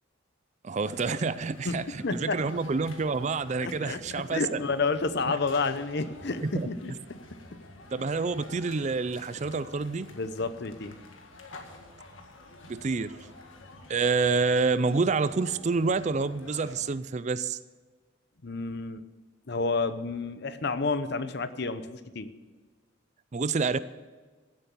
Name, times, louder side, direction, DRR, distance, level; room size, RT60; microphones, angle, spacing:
voice 1, 0.6-4.4 5.3-5.4 6.4-6.7 7.9-10.1 12.7-13.2 13.9-17.6 23.3-23.8, right 4 dB, 35° right, 15 dB, 0.4 m, -28 dB
sound 1, 0.8-16.9, left 2 dB, 80° left, 1.8 m, -49 dB
voice 2, 2.0-2.4 3.6-6.9 10.1-11.0 18.4-19.0 19.5-22.3, left 3 dB, 55° left, 12 dB, 0.8 m, -30 dB
15.0 x 8.1 x 7.0 m, 1.4 s
head